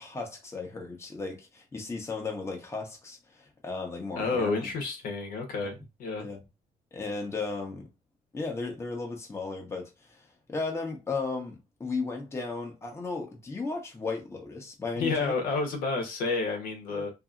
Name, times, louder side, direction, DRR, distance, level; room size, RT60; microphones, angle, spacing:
voice 1, 0.0-4.7 6.2-6.4 6.9-7.9 8.3-15.3 16.9-17.0, left 3 dB, 15° left, 0.9 m, -35 dB
voice 2, 4.2-6.3 15.0-17.1, left 3 dB, 70° left, 1.0 m, -30 dB
2.7 x 2.7 x 2.4 m
cardioid pair, 110°, 15 cm